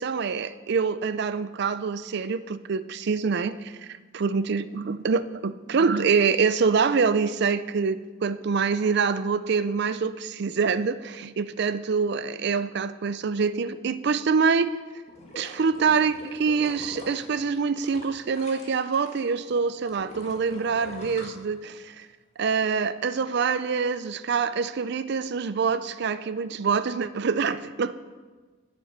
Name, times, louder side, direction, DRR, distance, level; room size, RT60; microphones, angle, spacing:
voice 1, 0.0-14.7 15.4-22.1 22.4-27.9, right 5 dB, 60° right, 14 dB, 0.4 m, -25 dB
sound 1, 15.1-19.2 19.5-22.0 22.4-22.5, left 1 dB, 35° left, 1.6 m, -44 dB
8.6 x 8.6 x 5.7 m, 1.4 s
head